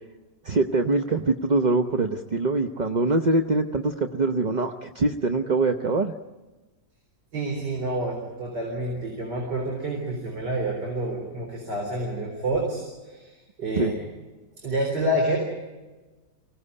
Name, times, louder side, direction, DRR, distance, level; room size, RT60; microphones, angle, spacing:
voice 1, 0.4-6.1 13.8-13.9, right 3 dB, 40° right, 6 dB, 0.7 m, -23 dB
voice 2, 7.3-14.1 14.6-15.4, right 1 dB, 85° right, 0 dB, 4.7 m, -28 dB
25.0 x 17.5 x 9.8 m, 1.2 s
omnidirectional pair, 1.8 m